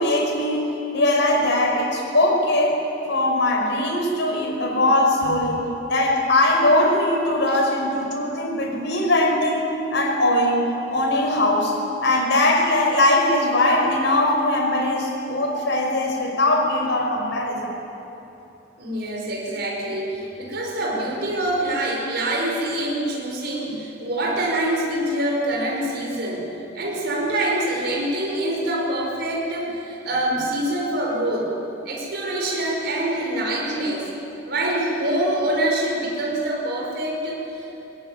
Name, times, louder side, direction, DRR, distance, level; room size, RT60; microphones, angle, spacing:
voice 1, 0.0-17.8, left 1 dB, 65° left, 1 dB, 5.5 m, -21 dB
voice 2, 18.8-26.5 26.7-31.5 31.9-34.1 34.5-37.7, right 1 dB, 60° right, -3 dB, 5.4 m, -25 dB
22.0 x 21.0 x 9.9 m, 3.0 s
head